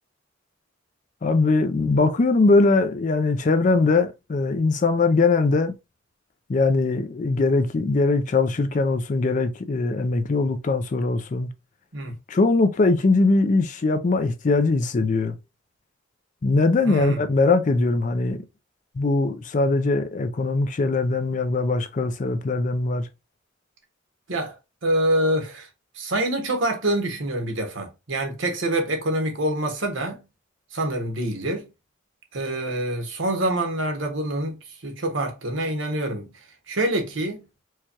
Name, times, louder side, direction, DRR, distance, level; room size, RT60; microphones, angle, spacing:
voice 1, 1.2-5.7 6.5-11.5 12.3-15.4 16.4-18.4 19.0-23.1, left 3 dB, 40° left, 0.4 m, -21 dB
voice 2, 16.8-17.2 24.3-24.6 24.8-25.7 25.9-30.2 30.7-31.7 32.3-36.3 36.7-37.4, right 1 dB, 70° right, 1.1 m, -26 dB
4.7 x 2.3 x 2.8 m
head